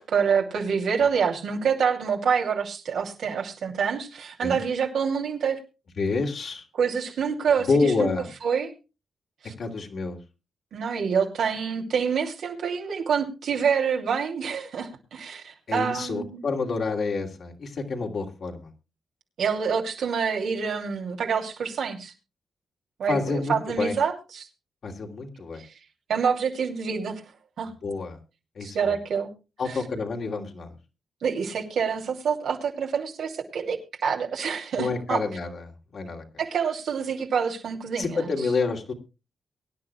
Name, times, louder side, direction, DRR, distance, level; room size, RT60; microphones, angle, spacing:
voice 1, 0.1-5.6 6.7-8.1 8.4-8.7 9.4-9.5 10.7-16.4 19.4-22.1 23.0-24.5 26.1-27.2 27.6-27.7 28.6-29.3 31.2-33.8 34.0-35.2 36.4-38.3, right 6 dB, 80° right, 2 dB, 2.8 m, -26 dB
voice 2, 6.0-6.6 7.6-8.3 9.6-10.2 15.7-18.7 23.1-23.9 24.8-25.6 27.8-28.2 28.5-29.0 29.6-30.8 34.8-36.2 38.0-38.9, left 4 dB, 65° left, 1 dB, 2.8 m, -28 dB
23.5 x 10.5 x 2.3 m, 0.29 s
cardioid pair, 80°, 0 cm